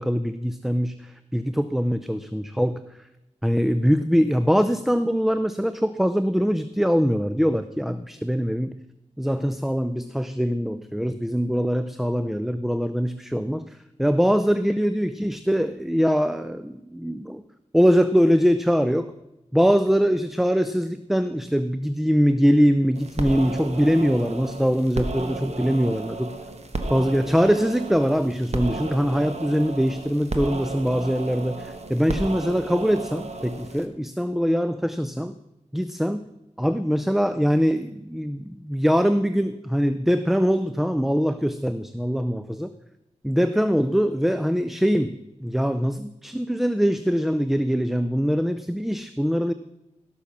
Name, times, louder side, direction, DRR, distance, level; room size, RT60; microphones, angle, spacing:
voice 1, 0.0-2.8 3.4-8.8 9.2-17.4 17.7-19.1 19.5-26.3 26.9-35.3 35.7-36.2 36.6-42.7 43.2-49.5, equal, ahead, 11 dB, 0.5 m, -23 dB
sound 1, 22.9-33.9, right 2 dB, 60° right, 1.3 m, -33 dB
17.0 x 6.3 x 5.8 m, 0.93 s
wide cardioid pair, 85°, 13 cm